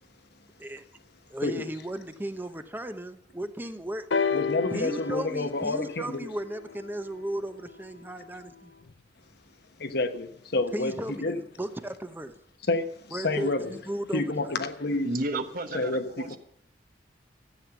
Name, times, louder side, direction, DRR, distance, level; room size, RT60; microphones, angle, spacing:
voice 1, 1.3-4.1 4.7-8.7 10.7-12.3 13.1-14.6, right 1 dB, 10° right, 0.8 m, -35 dB
sound 1, 4.1-7.9 8.9-9.0, left 5 dB, 85° left, 0.6 m, -32 dB
voice 2, 4.3-6.3 9.8-11.4 12.7-13.7 14.1-15.1 15.7-16.4, left 2 dB, 60° left, 1.2 m, -29 dB
voice 3, 15.0-16.4, right 2 dB, 50° right, 1.2 m, -32 dB
13.5 x 8.5 x 7.2 m
head